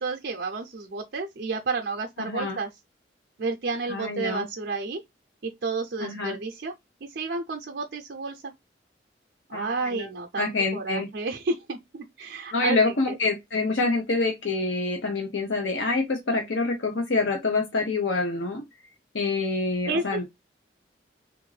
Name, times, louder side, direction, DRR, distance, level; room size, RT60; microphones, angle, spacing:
voice 1, 0.0-2.7 3.4-5.0 5.4-6.7 7.0-8.5 9.5-13.2 19.9-20.2, right 3 dB, 60° right, 0.5 m, -31 dB
voice 2, 2.2-2.6 3.9-4.5 6.0-6.4 9.5-10.1 10.4-11.1 12.5-18.6 19.1-20.2, left 3 dB, 90° left, 0.7 m, -26 dB
3.5 x 2.5 x 3.1 m
head